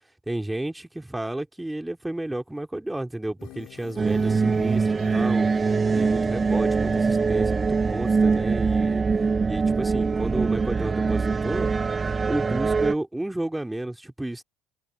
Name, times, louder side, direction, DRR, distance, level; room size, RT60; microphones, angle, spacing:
voice 1, 0.3-5.5 5.9-9.0 9.5-11.7 12.2-14.4, right 1 dB, 10° right, 2.9 m, -32 dB
sound 1, 3.4-8.4, left 18 dB, 65° left, 3.2 m, -46 dB
sound 2, 4.0-12.9, right 4 dB, 25° right, 0.5 m, -23 dB
hypercardioid pair, 75°, 0 cm